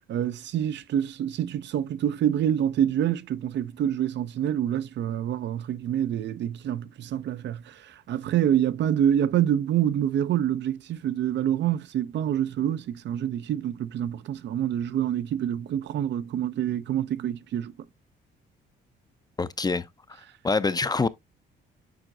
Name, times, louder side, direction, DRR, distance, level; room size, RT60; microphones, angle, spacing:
voice 1, 0.0-17.7, right 10 dB, 65° right, 0.5 m, -26 dB
voice 2, 19.4-19.9 20.4-21.1, left 4 dB, 20° left, 0.4 m, -25 dB
9.2 x 4.4 x 2.6 m
cardioid pair, 90°, 20 cm